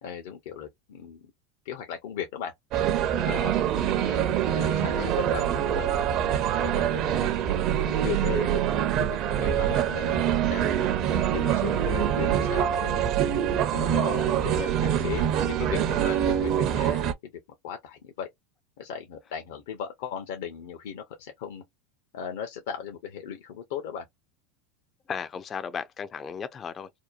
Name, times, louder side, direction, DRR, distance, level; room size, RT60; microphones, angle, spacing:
voice 1, 0.0-1.3 1.6-2.5 3.2-3.7 4.0-4.2 4.5-7.3 7.8-8.6 8.9-10.8 11.2-13.0 13.7-17.3 17.6-18.3 18.8-21.6 22.1-24.0, left 8 dB, 70° left, 0.6 m, -37 dB
sound 1, 2.7-17.1, right 10 dB, 50° right, 0.5 m, -25 dB
voice 2, 3.3-4.0 25.1-26.9, left 6 dB, 30° left, 0.3 m, -36 dB
2.7 x 2.1 x 2.3 m
hypercardioid pair, 105°, 0 cm